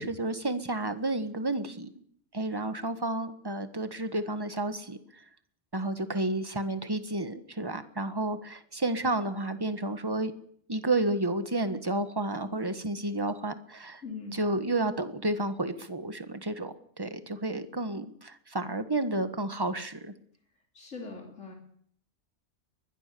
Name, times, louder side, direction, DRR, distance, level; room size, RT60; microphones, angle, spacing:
voice 1, 0.0-1.9 2.3-5.0 5.7-10.3 10.7-14.0 14.3-20.1, right 2 dB, 20° right, 10 dB, 1.6 m, -31 dB
voice 2, 14.0-14.4 20.7-21.5, left 4 dB, 80° left, 1 dB, 3.7 m, -41 dB
22.5 x 21.0 x 7.0 m, 0.63 s
omnidirectional pair, 1.3 m